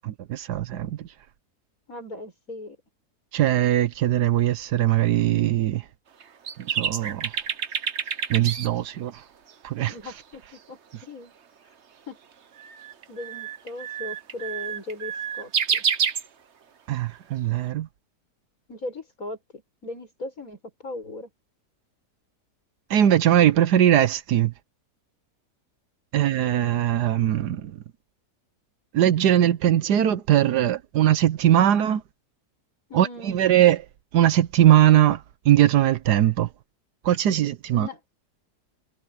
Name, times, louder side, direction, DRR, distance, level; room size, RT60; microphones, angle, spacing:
voice 1, 0.0-1.1 3.3-5.8 6.6-7.3 8.3-9.1 9.6-9.9 16.9-17.9 22.9-24.5 26.1-27.7 28.9-32.0 32.9-33.8 34.1-36.5 37.0-37.9, right 11 dB, 75° right, 1.3 m, -20 dB
voice 2, 1.9-2.8 9.9-11.3 12.1-12.2 13.1-15.8 18.7-21.3 32.9-33.4 37.7-38.0, left 2 dB, 55° left, 7.5 m, -38 dB
sound 1, 6.2-8.7 9.1-9.2 9.5-9.6 12.6-16.3, right 7 dB, 45° right, 1.1 m, -28 dB
omnidirectional pair, 1.8 m